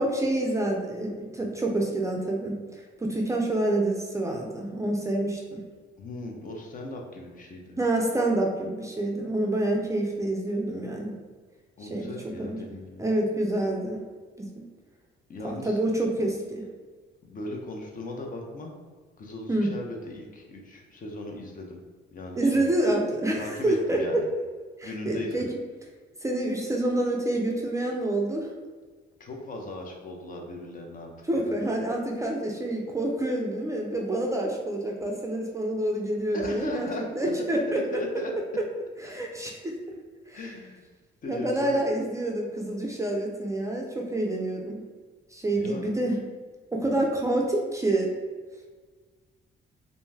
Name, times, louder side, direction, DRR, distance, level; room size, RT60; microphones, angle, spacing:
voice 1, 0.0-2.6 3.0-5.6 7.8-11.2 11.8-12.6 13.0-14.0 14.4-14.7 15.4-16.7 19.5-19.7 22.4-24.2 24.8-25.5 26.2-28.5 31.3-36.9 37.2-37.8 39.0-39.8 40.3-40.4 41.3-44.8 45.3-46.2 46.7-48.1, right 1 dB, 15° right, 0 dB, 0.4 m, -27 dB
voice 2, 6.0-7.8 11.8-13.1 15.3-15.8 17.2-18.7 19.2-21.8 22.1-22.7 23.4-24.3 24.8-25.4 29.2-31.5 36.3-37.1 37.7-38.3 40.3-40.8 41.2-41.8 45.5-45.9 46.8-47.1, left 2 dB, 45° left, 1 dB, 0.5 m, -37 dB
2.6 x 2.2 x 3.2 m, 1.5 s
cardioid pair, 90°, 20 cm